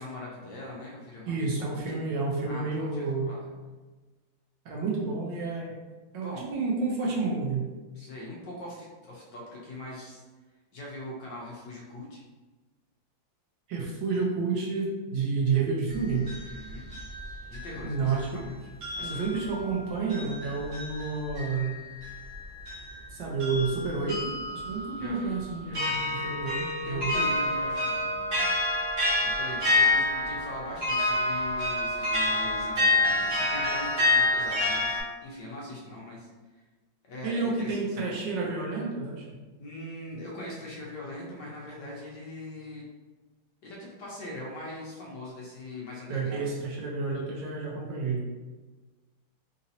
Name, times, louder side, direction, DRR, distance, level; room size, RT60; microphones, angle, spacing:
voice 1, 0.0-2.0 2.4-3.5 6.1-6.5 7.9-10.2 10.7-12.2 16.4-16.9 17.5-18.6 19.0-19.4 25.0-25.4 25.6-26.2 26.8-28.5 29.2-36.3 36.5-36.6 37.0-38.1 39.6-42.8 43.6-46.6 48.1-48.2, left 1 dB, 65° left, -4 dB, 1.2 m, -41 dB
voice 2, 1.3-3.4 4.6-5.8 6.1-7.7 13.7-16.2 17.8-18.3 19.0-21.8 23.1-27.2 37.2-39.4 46.1-48.2, right 4 dB, 70° right, -3 dB, 1.3 m, -30 dB
sound 1, 15.9-18.4 18.8-35.0, left 2 dB, 55° right, 0.7 m, -29 dB
3.9 x 2.7 x 2.6 m, 1.2 s
omnidirectional pair, 2.2 m